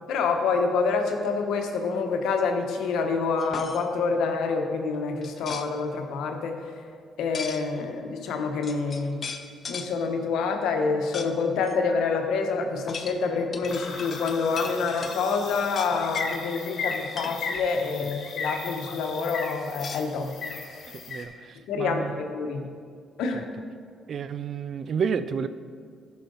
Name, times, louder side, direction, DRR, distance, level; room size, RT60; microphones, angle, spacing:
voice 1, 0.1-6.6 7.2-9.2 9.7-20.3 20.7-20.8 21.7-22.6 23.2-23.5, left 4 dB, 85° left, 4 dB, 1.0 m, -27 dB
sound 1, 3.4-3.8 5.2-5.7 7.3-7.6 8.3-8.4 8.6-9.9 11.1-11.3 11.6-11.7 12.9-15.2 15.7-16.4 16.9-17.4 19.7-20.6, left 5 dB, 45° left, 0.7 m, -38 dB
sound 2, 13.7-21.2, left 4 dB, 65° left, 1.5 m, -36 dB
voice 2, 20.9-22.2 23.3-23.4 24.1-25.5, right 6 dB, 55° right, 12 dB, 0.4 m, -31 dB
14.0 x 5.8 x 4.0 m, 2.2 s
cardioid pair, 90°, 0 cm